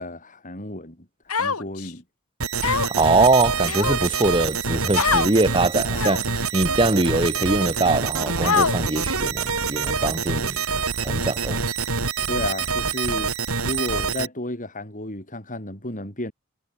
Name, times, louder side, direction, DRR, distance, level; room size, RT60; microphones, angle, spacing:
voice 1, 0.0-2.0 12.3-13.3 13.6-16.3, left 1 dB, 35° left, 6.5 m, -32 dB
Human voice, 1.3-1.9 2.6-3.1 3.6-4.2 4.9-5.3 5.9-6.4 7.1-7.2 8.4-9.0, left 5 dB, 80° left, 2.2 m, -24 dB
sound 1, 2.4-14.3, right 5 dB, 70° right, 3.8 m, -26 dB
voice 2, 2.9-10.6 11.0-11.6, right 2 dB, 25° right, 1.7 m, -22 dB
head